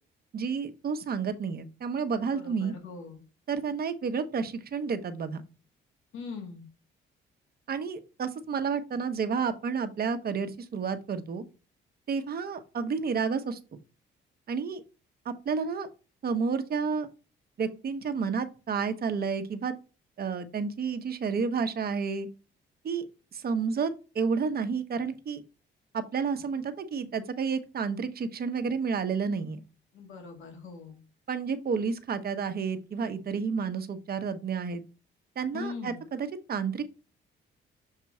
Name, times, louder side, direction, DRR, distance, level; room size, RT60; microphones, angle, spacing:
voice 1, 0.3-2.7 3.5-5.4 7.7-11.4 12.1-13.8 14.5-14.8 15.2-15.9 16.2-17.1 17.6-19.7 20.2-22.3 22.8-23.1 23.3-25.4 25.9-29.6 31.3-34.8 35.4-36.8, right 5 dB, 50° right, 9 dB, 1.0 m, -30 dB
voice 2, 2.3-3.2 6.1-6.7 29.9-31.0 35.5-36.0, left 4 dB, 85° left, 2 dB, 1.7 m, -41 dB
6.6 x 3.0 x 4.7 m, 0.33 s
cardioid pair, 90°, 20 cm